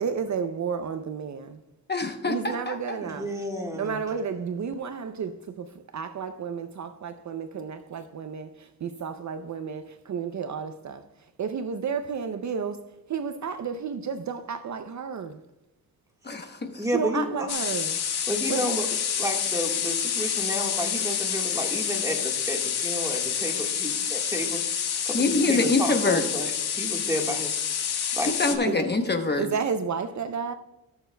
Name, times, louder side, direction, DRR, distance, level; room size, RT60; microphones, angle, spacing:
voice 1, 0.0-1.6 2.2-3.3 3.8-15.4 16.9-18.0 18.5-18.6 28.6-28.8 29.4-30.5, right 6 dB, 50° right, 0.5 m, -32 dB
voice 2, 1.9-2.8 16.2-16.8 25.1-26.2 28.4-29.5, left 3 dB, 25° left, 0.9 m, -25 dB
voice 3, 3.0-4.0 16.8-17.5 18.3-18.9 19.2-26.5 26.8-27.6 28.1-28.9, equal, 10° right, 1.5 m, -31 dB
sound 1, 17.5-28.6, left 8 dB, 75° left, 1.1 m, -28 dB
19.5 x 6.9 x 2.2 m
wide cardioid pair, 145°, 39 cm